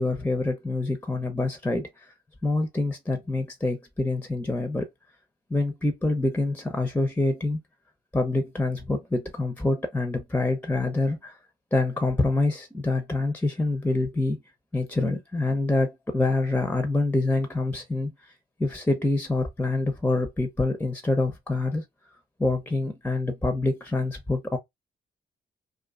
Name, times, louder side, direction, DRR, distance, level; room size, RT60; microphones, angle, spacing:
voice 1, 0.0-2.1 2.4-4.9 5.5-7.6 8.1-11.4 11.7-14.4 14.7-18.3 18.6-21.8 22.4-24.6, left 2 dB, 10° left, 0.8 m, -26 dB
2.5 x 2.5 x 2.4 m
supercardioid pair, 55°, 20 cm